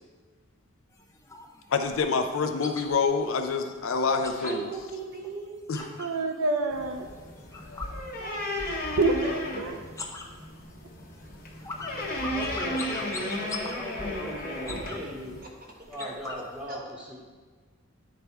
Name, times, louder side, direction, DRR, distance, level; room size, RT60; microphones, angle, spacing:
sound 1, 0.9-6.2 6.6-8.7 9.0-9.5 9.8-16.7, left 3 dB, 15° left, 0.5 m, -42 dB
voice 1, 1.7-4.7 5.7-5.8, left 4 dB, 70° left, 6 dB, 0.5 m, -26 dB
voice 2, 4.4-5.9 8.2-9.8 12.6-13.6 15.4-15.5 16.0-16.1 16.7-16.8, right 3 dB, 45° right, 0 dB, 0.9 m, -40 dB
voice 3, 6.0-7.1 9.0-9.8, right 2 dB, 80° right, 5 dB, 0.5 m, -27 dB
sound 2, 6.7-15.4, left 1 dB, 45° left, 1.0 m, -35 dB
voice 4, 12.3-15.4 15.9-17.3, equal, 5° right, -2 dB, 0.8 m, -38 dB
9.7 x 3.4 x 4.4 m, 1.5 s
head